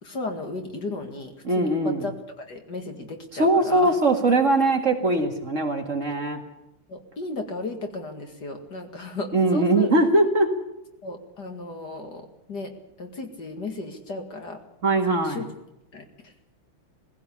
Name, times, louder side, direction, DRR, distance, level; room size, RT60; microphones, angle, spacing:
voice 1, 0.0-3.9 6.9-9.9 11.0-14.6 15.2-15.5 15.9-16.3, left 2 dB, 50° left, 4 dB, 2.7 m, -35 dB
voice 2, 1.4-2.0 3.4-6.4 9.3-10.5 14.8-15.4, right 2 dB, 35° right, 3 dB, 2.1 m, -21 dB
19.0 x 16.5 x 8.5 m, 0.88 s
omnidirectional pair, 2.3 m